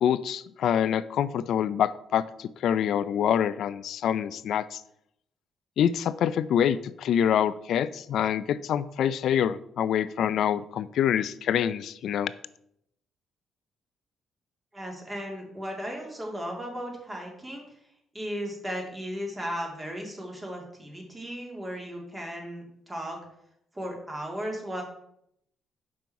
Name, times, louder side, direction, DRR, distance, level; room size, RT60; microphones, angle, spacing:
voice 1, 0.0-4.8 5.8-12.3, left 9 dB, 75° left, 16 dB, 0.4 m, -26 dB
voice 2, 14.7-17.6 18.1-23.2 23.7-24.8, equal, 20° right, 0 dB, 2.1 m, -36 dB
6.1 x 5.3 x 4.5 m, 0.75 s
cardioid pair, 90°, 0 cm